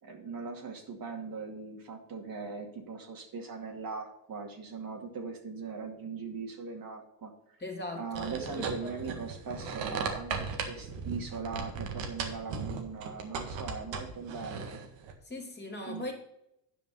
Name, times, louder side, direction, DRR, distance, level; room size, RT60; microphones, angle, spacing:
voice 1, 0.0-7.6 7.9-14.8 15.9-16.1, right 5 dB, 45° right, 2 dB, 2.3 m, -40 dB
voice 2, 7.6-8.9 15.2-16.1, left 2 dB, 20° left, 1 dB, 2.9 m, -40 dB
sound 1, 8.1-15.1, right 5 dB, 70° right, 1.9 m, -37 dB
10.5 x 5.2 x 5.6 m, 0.79 s
supercardioid pair, 80°, 46 cm